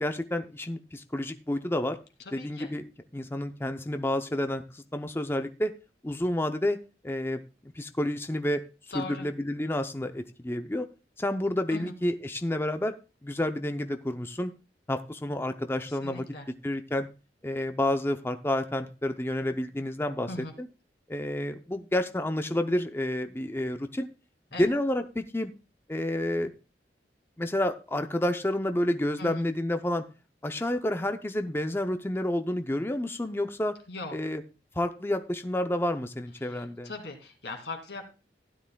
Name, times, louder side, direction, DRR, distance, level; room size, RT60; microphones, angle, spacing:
voice 1, 0.0-2.0 2.3-2.9 3.1-5.7 6.0-6.8 7.0-8.6 8.9-10.9 11.2-12.9 13.2-14.5 14.9-16.3 16.6-17.1 17.4-20.3 20.6-20.7 21.1-24.1 24.6-25.5 25.9-26.5 27.4-30.0 30.4-33.8 34.1-34.4 34.8-36.9, left 1 dB, 15° left, 8 dB, 0.5 m, -29 dB
voice 2, 2.3-2.7 8.9-9.3 11.7-11.9 15.9-16.5 20.3-20.5 24.5-24.6 29.2-29.4 33.9-34.2 36.4-38.0, left 2 dB, 85° left, 4 dB, 2.3 m, -39 dB
15.5 x 9.9 x 2.2 m, 0.31 s
head